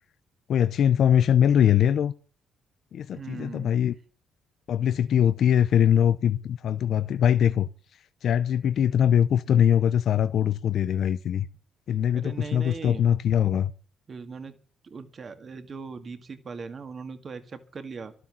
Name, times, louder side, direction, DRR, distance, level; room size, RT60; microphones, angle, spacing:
voice 1, 0.5-2.1 2.9-3.9 4.7-7.7 8.2-11.5 11.9-13.7, left 9 dB, 65° left, 0.6 m, -22 dB
voice 2, 3.1-3.8 12.1-13.1 14.1-14.6 14.8-18.1, right 5 dB, 40° right, 2.1 m, -39 dB
12.5 x 11.5 x 7.1 m
cardioid pair, 95°, 0 cm